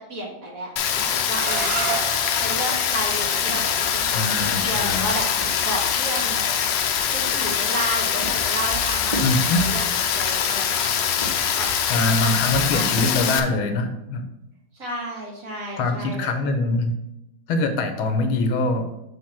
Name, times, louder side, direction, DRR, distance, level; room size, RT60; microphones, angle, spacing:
voice 1, 0.1-2.0 2.4-5.3 5.6-6.5 7.1-9.8 10.1-11.7 12.0-13.0 14.7-16.4, right 1 dB, 45° right, -3 dB, 2.0 m, -32 dB
Rain, 0.8-13.4, left 8 dB, 70° left, 1.2 m, -23 dB
sound 1, 1.3-7.0, right 6 dB, 90° right, 1.7 m, -35 dB
sound 2, 3.4-6.0 7.7-10.2 11.1-13.7, right 2 dB, 25° right, 1.0 m, -35 dB
voice 2, 4.0-5.1 9.2-9.6 11.9-14.2 15.8-17.0 17.5-18.8, left 2 dB, 90° left, 7 dB, 1.7 m, -23 dB
6.4 x 3.8 x 5.8 m, 0.85 s
omnidirectional pair, 2.2 m